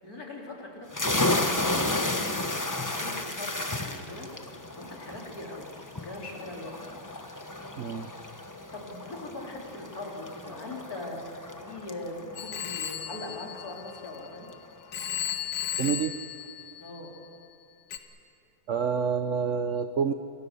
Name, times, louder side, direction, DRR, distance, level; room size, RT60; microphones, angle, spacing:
voice 1, 0.0-2.6 2.9-4.3 4.7-6.7 8.7-14.5 16.8-17.2, left 2 dB, 45° left, -1 dB, 4.1 m, -41 dB
sound 1, 0.9-14.3, left 2 dB, 20° left, 0.5 m, -33 dB
voice 2, 7.8-8.1 15.8-16.1 18.7-20.1, right 7 dB, 70° right, 9 dB, 0.7 m, -28 dB
Telephone, 12.4-14.5 14.9-17.3 17.9-18.0, left 11 dB, 70° left, 2.0 m, -35 dB
28.0 x 22.0 x 6.8 m, 2.5 s
omnidirectional pair, 2.3 m